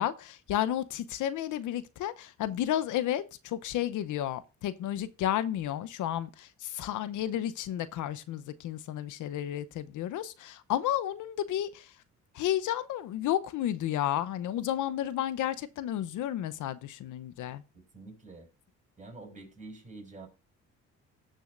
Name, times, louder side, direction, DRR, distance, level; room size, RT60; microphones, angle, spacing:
voice 1, 0.0-11.9 12.3-17.6, left 11 dB, 80° left, 0.8 m, -32 dB
voice 2, 17.9-18.5 19.0-20.3, right 3 dB, 25° right, 6.1 m, -47 dB
19.0 x 6.4 x 2.5 m
cardioid pair, 90°, 30 cm